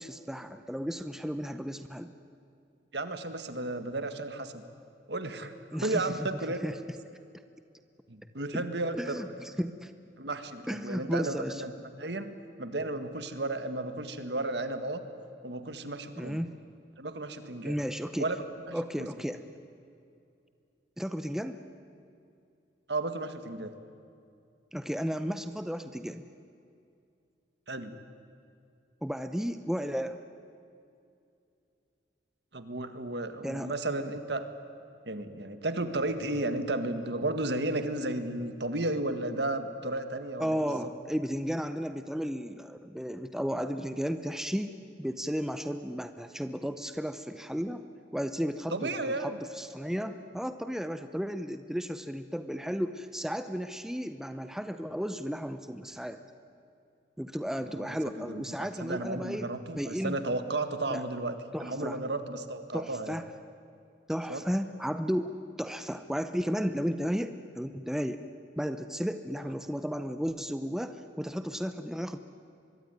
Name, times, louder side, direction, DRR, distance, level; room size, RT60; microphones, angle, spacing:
voice 1, 0.0-2.1 5.7-6.3 6.6-6.7 8.5-8.6 8.9-9.9 10.7-11.6 16.2-16.5 17.6-18.3 18.7-19.4 21.0-21.6 24.7-26.2 29.0-30.2 33.4-33.8 40.4-47.8 48.1-48.9 49.2-56.2 57.2-59.5 59.8-60.2 60.9-61.1 61.5-62.0 62.7-63.3 64.1-65.3 65.6-68.2 68.6-72.2, equal, 5° right, 9 dB, 0.7 m, -34 dB
voice 2, 2.9-4.6 5.1-5.5 5.8-6.6 8.1-9.2 10.2-11.7 12.0-12.3 12.6-15.0 15.4-16.4 17.0-17.8 18.2-18.4 18.7-19.1 22.9-23.7 27.7-28.0 32.5-34.5 35.1-40.7 48.7-49.4 57.7-61.3 61.6-63.2 64.3-64.4, right 2 dB, 60° right, 9 dB, 1.8 m, -33 dB
24.0 x 22.5 x 9.8 m, 2.5 s
head